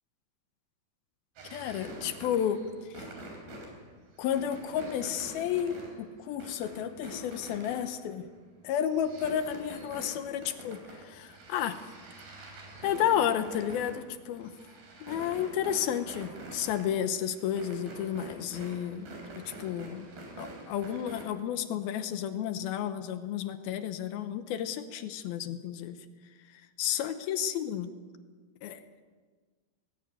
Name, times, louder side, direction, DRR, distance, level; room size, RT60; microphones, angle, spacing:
sound 1, 1.4-8.3 8.7-21.2, right 1 dB, 75° right, 5.6 m, -46 dB
voice 1, 1.5-3.1 4.2-8.2 8.6-11.8 12.8-14.6 15.0-20.1 20.4-26.0 26.8-27.9 28.6-28.8, left 9 dB, 80° left, 10 dB, 2.8 m, -32 dB
19.0 x 16.0 x 9.1 m, 1.5 s
omnidirectional pair, 4.4 m